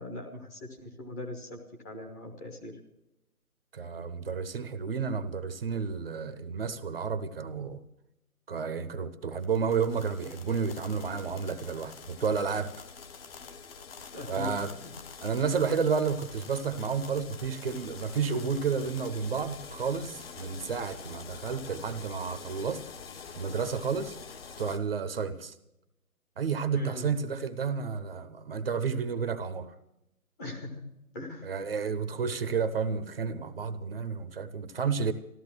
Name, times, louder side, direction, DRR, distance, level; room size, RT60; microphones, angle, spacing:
voice 1, 0.0-1.6 1.8-2.7 14.1-14.5 14.8-14.9 26.7-27.1 30.4-30.9 31.1-31.5, left 2 dB, 10° left, 0 dB, 0.9 m, -40 dB
voice 2, 3.7-7.8 8.5-12.7 14.3-14.7 15.2-22.8 23.4-24.2 24.6-25.5 26.4-29.7 31.4-35.1, right 6 dB, 40° right, 11 dB, 0.9 m, -31 dB
sound 1, 9.4-24.8, left 5 dB, 40° left, 1.3 m, -46 dB
14.5 x 13.0 x 6.1 m, 0.87 s
figure-of-eight pair, 145°, 44 cm